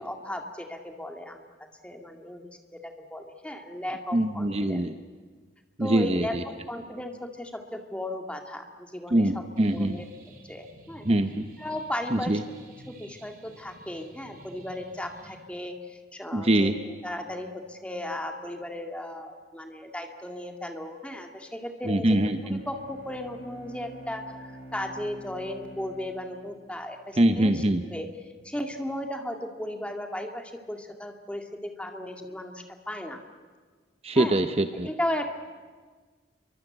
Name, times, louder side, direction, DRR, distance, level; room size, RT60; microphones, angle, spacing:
voice 1, 0.0-1.4 1.8-4.9 5.8-9.4 9.7-10.0 10.4-11.0 11.6-12.4 12.9-33.2 34.1-34.4 34.8-35.3, left 1 dB, 5° left, 4 dB, 2.0 m, -36 dB
voice 2, 4.1-4.9 5.8-6.4 9.1-10.0 11.0-11.5 12.1-12.4 16.3-16.8 21.9-22.6 27.2-27.8 34.0-34.9, right 1 dB, 30° right, 8 dB, 0.8 m, -23 dB
sound 1, 9.6-15.4, right 1 dB, 50° right, 3.8 m, -52 dB
Bowed string instrument, 22.3-27.5, right 1 dB, 35° left, 6.2 m, -47 dB
28.5 x 23.5 x 7.9 m, 1.5 s
head